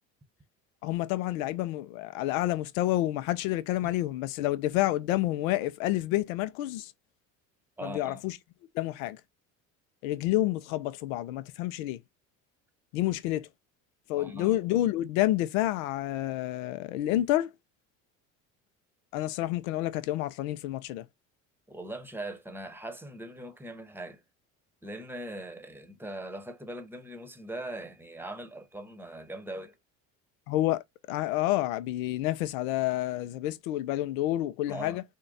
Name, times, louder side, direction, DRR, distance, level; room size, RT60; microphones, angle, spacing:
voice 1, 0.8-6.9 7.8-8.4 8.7-9.2 10.0-12.0 12.9-13.5 14.1-17.5 19.1-21.0 30.5-30.8 31.1-35.0, left 15 dB, 80° left, 0.6 m, -29 dB
voice 2, 7.8-8.2 14.2-14.6 21.7-24.2 24.8-29.8 34.7-35.0, right 1 dB, 5° right, 0.9 m, -40 dB
3.7 x 2.2 x 3.9 m
supercardioid pair, 80°, 40 cm